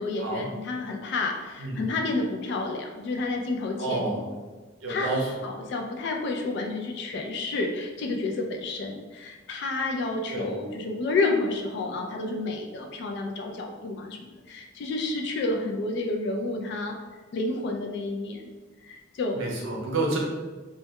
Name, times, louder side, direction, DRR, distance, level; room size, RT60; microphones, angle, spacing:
voice 1, 0.0-4.2 4.9-5.1 5.4-17.0 17.3-18.5 18.8-19.5, left 3 dB, 60° left, 3 dB, 0.3 m, -30 dB
voice 2, 3.8-4.3 4.8-5.4 10.3-10.5 19.3-20.2, right 2 dB, 70° right, -2 dB, 0.6 m, -29 dB
2.2 x 2.1 x 2.8 m, 1.3 s
head